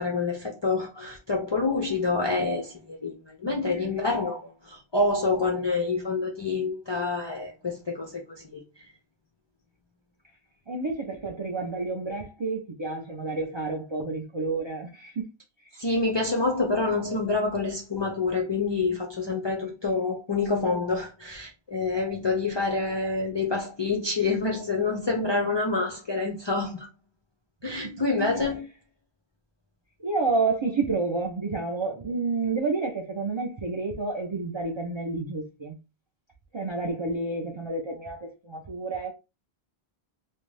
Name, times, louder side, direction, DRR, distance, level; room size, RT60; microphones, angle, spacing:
voice 1, 0.0-8.2 8.5-8.6 15.7-26.9 27.6-28.7, left 3 dB, 45° left, 0.3 m, -27 dB
voice 2, 10.7-15.2 19.6-19.7 27.8-27.9 30.0-35.7 36.5-39.1, right 3 dB, 45° right, 0.4 m, -30 dB
2.5 x 2.2 x 3.1 m
omnidirectional pair, 1.1 m